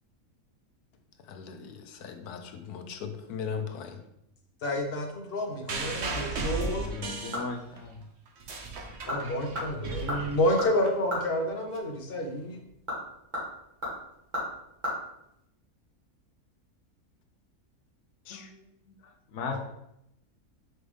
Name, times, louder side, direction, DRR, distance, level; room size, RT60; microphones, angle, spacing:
voice 1, 1.3-4.0 18.3-18.5, left 6 dB, 90° left, 6 dB, 1.2 m, -38 dB
voice 2, 4.6-6.8 9.1-12.6 19.5-19.6, left 1 dB, 40° left, 2 dB, 1.2 m, -29 dB
sound 1, 5.7-7.9 8.3-10.9 11.8-11.9, right 3 dB, 50° right, 1.1 m, -35 dB
voice 3, 6.8-8.0 18.3-18.6 19.3-19.6, left 4 dB, 65° left, 3 dB, 0.9 m, -37 dB
sound 2, 6.8-7.7 8.1-8.2 8.8-9.2 9.5-11.3 12.6-14.9 15.2-15.3, left 1 dB, 30° right, 2.5 m, -35 dB
6.2 x 5.0 x 3.4 m, 0.80 s
omnidirectional pair, 1.6 m